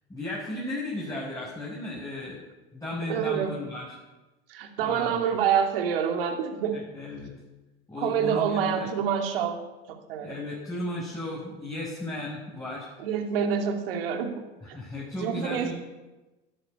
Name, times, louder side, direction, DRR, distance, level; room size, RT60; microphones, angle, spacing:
voice 1, 0.1-2.5 2.7-4.0 4.8-5.2 6.7-7.3 7.9-8.9 10.2-12.9 14.6-15.7, left 1 dB, 10° left, -6 dB, 6.6 m, -35 dB
voice 2, 3.1-3.6 4.5-6.8 8.0-9.6 9.9-10.4 13.0-14.4 14.7-14.8 15.2-15.7, right 7 dB, 70° right, 5 dB, 2.9 m, -27 dB
14.5 x 11.5 x 8.7 m, 1.1 s
hypercardioid pair, 85°, 30 cm